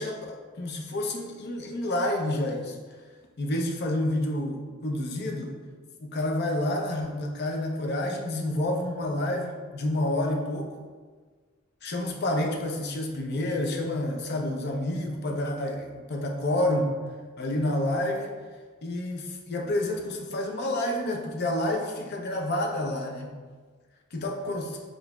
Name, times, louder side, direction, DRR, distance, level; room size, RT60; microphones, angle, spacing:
voice 1, 0.0-2.8 3.4-5.5 6.0-10.8 11.8-16.9 17.4-18.3 18.8-23.3 24.1-24.7, left 1 dB, 50° left, 1 dB, 0.5 m, -29 dB
6.9 x 2.5 x 2.2 m, 1.5 s
head